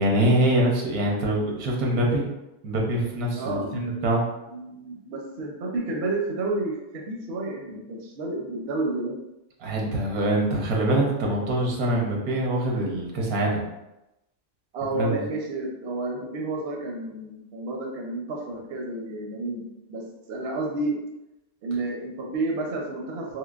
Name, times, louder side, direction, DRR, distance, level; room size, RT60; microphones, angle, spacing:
voice 1, 0.0-2.2 2.6-4.2 9.6-13.6 14.9-15.2, right 1 dB, 85° right, -1 dB, 1.3 m, -24 dB
voice 2, 3.4-4.1 4.5-9.1 14.7-20.0 20.3-21.0 21.6-23.4, right 2 dB, 55° right, 0 dB, 0.8 m, -30 dB
3.8 x 2.9 x 2.4 m, 0.93 s
omnidirectional pair, 1.5 m